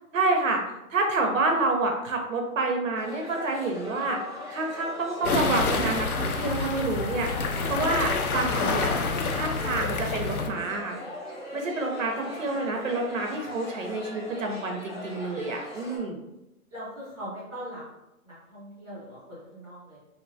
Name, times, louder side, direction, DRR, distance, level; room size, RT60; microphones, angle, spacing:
voice 1, 0.1-0.6 0.9-4.2 4.5-7.3 7.7-8.9 9.3-11.0 11.5-16.2, right 3 dB, 65° right, 2 dB, 0.6 m, -28 dB
sound 1, 3.0-16.0, left 1 dB, 35° left, 0.6 m, -40 dB
sound 2, 5.2-10.5, left 4 dB, 85° left, 0.6 m, -28 dB
voice 2, 12.2-12.8 16.7-17.8 18.2-20.0, equal, 5° left, -13 dB, 0.8 m, -41 dB
2.8 x 2.2 x 2.6 m, 0.91 s
hypercardioid pair, 160°, 43 cm